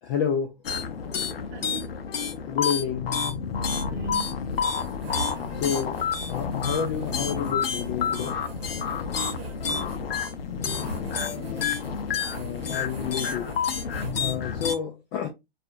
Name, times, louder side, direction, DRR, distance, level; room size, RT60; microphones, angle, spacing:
voice 1, 0.0-0.5 2.5-3.1 5.5-8.4 11.3-11.6 12.3-13.5 14.2-15.3, left 7 dB, 20° left, 0.3 m, -30 dB
sound 1, 0.6-14.7, left 6 dB, 75° left, 0.6 m, -29 dB
voice 2, 1.5-2.0 3.8-4.5 9.3-10.2 10.8-11.6, right 11 dB, 30° right, 0.6 m, -42 dB
sound 2, 4.5-14.7, right 2 dB, 80° right, 1.0 m, -43 dB
4.1 x 2.5 x 2.3 m
figure-of-eight pair, 115°, 30 cm